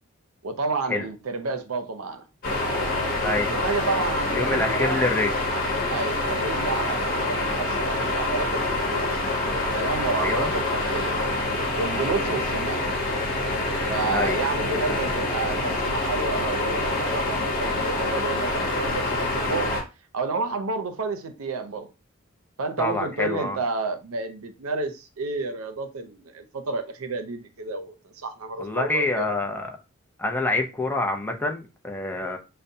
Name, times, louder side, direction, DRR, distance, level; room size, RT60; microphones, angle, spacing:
voice 1, 0.4-2.2 3.5-5.0 5.9-9.2 9.7-11.2 11.8-12.9 13.9-19.8 20.1-21.9 22.6-29.3, right 3 dB, 85° right, 0.6 m, -30 dB
sound 1, 2.4-19.8, left 2 dB, 45° left, 1.1 m, -26 dB
voice 2, 4.3-5.3 10.2-10.5 14.1-14.4 22.8-23.6 28.6-29.7 30.2-32.4, left 2 dB, 10° left, 0.5 m, -26 dB
5.3 x 2.2 x 2.6 m
head